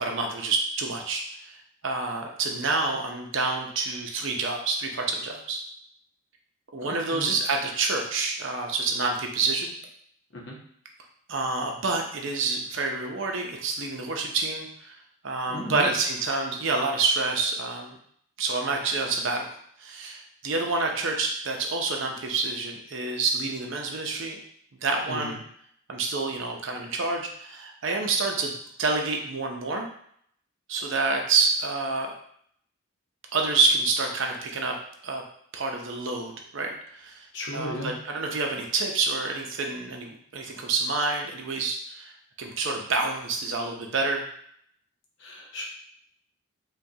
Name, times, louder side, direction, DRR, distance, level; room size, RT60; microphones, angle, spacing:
voice 1, 0.0-1.6 1.8-5.6 6.7-9.7 11.3-14.9 15.2-17.9 18.4-19.4 19.8-24.4 24.8-25.4 25.9-28.5 28.8-29.9 30.7-32.1 33.3-34.8 35.0-35.2 35.5-37.3 37.5-42.1 42.4-44.2, right 3 dB, 60° right, 2 dB, 0.6 m, -28 dB
voice 2, 6.8-7.4 10.3-10.6 15.5-15.9 25.1-25.3 37.3-37.9 45.2-45.6, left 1 dB, 55° left, -3 dB, 0.8 m, -36 dB
4.9 x 2.3 x 2.7 m, 0.67 s
head